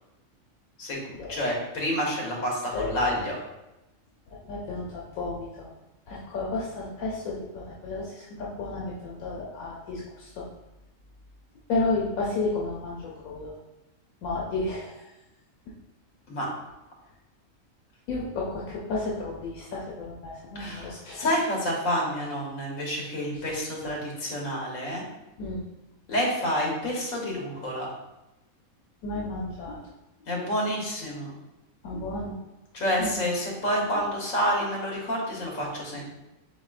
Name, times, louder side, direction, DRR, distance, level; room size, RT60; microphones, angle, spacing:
voice 1, 0.8-3.4 16.3-16.5 20.5-25.1 26.1-27.9 30.3-31.3 32.7-36.0, equal, 70° left, -2 dB, 1.5 m, -29 dB
voice 2, 2.7-3.1 4.4-5.7 6.1-10.4 11.7-13.5 14.2-15.0 18.1-21.3 23.5-23.6 23.8-23.9 25.4-25.7 29.0-29.8 31.8-32.3 33.0-33.2, left 3 dB, 85° left, -4 dB, 1.1 m, -32 dB
4.9 x 3.7 x 2.4 m, 0.98 s
omnidirectional pair, 1.4 m